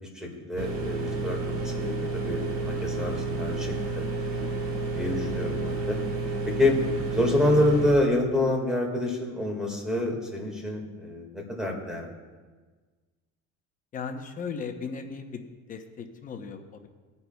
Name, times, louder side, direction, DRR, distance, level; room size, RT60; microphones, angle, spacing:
voice 1, 0.0-4.1 4.9-6.0 6.6-6.8 7.1-12.1, left 1 dB, ahead, 0 dB, 1.8 m, -27 dB
sound 1, 0.6-7.9, right 3 dB, 45° right, 1.8 m, -30 dB
voice 2, 3.0-3.3 13.9-16.9, left 5 dB, 25° left, 4 dB, 0.8 m, -37 dB
19.5 x 9.5 x 2.3 m, 1.4 s
cardioid pair, 165°, 32 cm